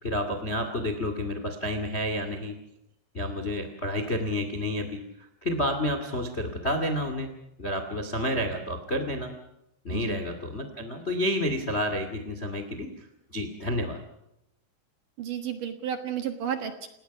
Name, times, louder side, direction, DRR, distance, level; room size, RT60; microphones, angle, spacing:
voice 1, 0.0-2.5 3.1-5.0 5.4-7.3 7.6-9.3 9.8-14.0, left 1 dB, 30° left, 7 dB, 1.1 m, -30 dB
voice 2, 15.2-16.9, right 9 dB, 60° right, 7 dB, 2.6 m, -32 dB
30.0 x 18.0 x 5.9 m, 0.84 s
omnidirectional pair, 5.2 m